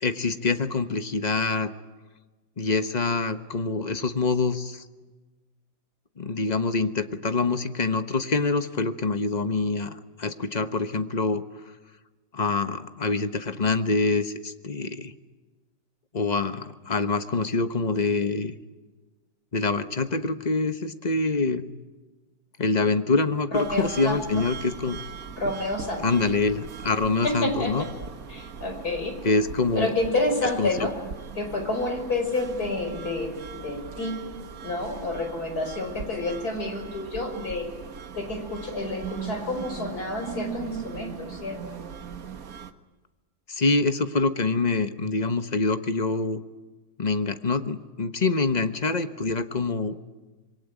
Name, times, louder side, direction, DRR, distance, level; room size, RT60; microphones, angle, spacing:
voice 1, 0.0-1.7 2.6-4.8 6.2-11.4 12.3-15.1 16.1-18.6 19.5-21.7 22.6-25.0 26.0-27.9 29.2-29.9 30.6-30.7 43.5-46.4 47.0-50.0, left 3 dB, 25° left, 9 dB, 1.1 m, -25 dB
voice 2, 23.5-24.1 25.4-26.1 27.2-27.7 28.3-29.1 29.8-30.9 31.4-34.1 34.6-37.7 38.1-41.8, left 2 dB, 50° left, 4 dB, 5.8 m, -29 dB
sound 1, 23.5-42.7, right 7 dB, 50° right, 1.7 m, -40 dB
26.5 x 23.0 x 9.1 m, 1.2 s
omnidirectional pair, 2.1 m